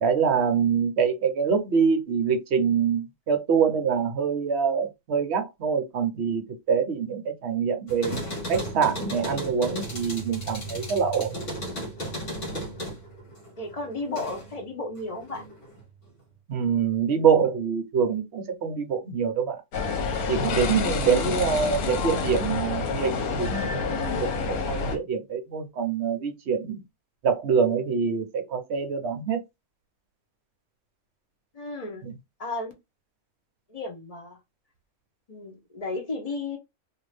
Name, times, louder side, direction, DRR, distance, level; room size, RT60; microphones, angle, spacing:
voice 1, 0.0-8.2 8.5-11.4 16.5-19.6 20.3-23.1 23.4-26.8 27.2-29.4, right 6 dB, 60° right, 0.8 m, -25 dB
sound 1, 7.9-14.6 15.0-15.8, right 1 dB, 55° left, 1.4 m, -35 dB
voice 2, 13.6-15.4 31.5-32.1 32.4-32.7 33.7-34.4 35.3-36.6, left 2 dB, 40° left, 0.6 m, -33 dB
sound 2, 19.7-25.0, left 4 dB, 75° left, 1.2 m, -28 dB
2.6 x 2.5 x 3.2 m
omnidirectional pair, 1.6 m